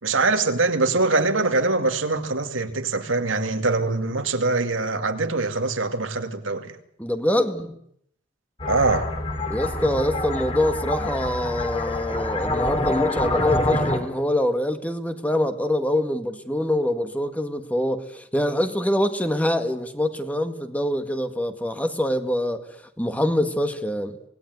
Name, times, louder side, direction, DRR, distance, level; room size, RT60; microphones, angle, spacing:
voice 1, 0.0-6.8 8.7-9.1, right 3 dB, 90° right, 2.5 m, -23 dB
voice 2, 7.0-7.7 9.5-22.6 23.0-24.2, left 1 dB, 10° left, 1.7 m, -24 dB
sound 1, 8.6-14.0, left 2 dB, 30° left, 3.6 m, -26 dB
26.0 x 19.5 x 9.5 m
head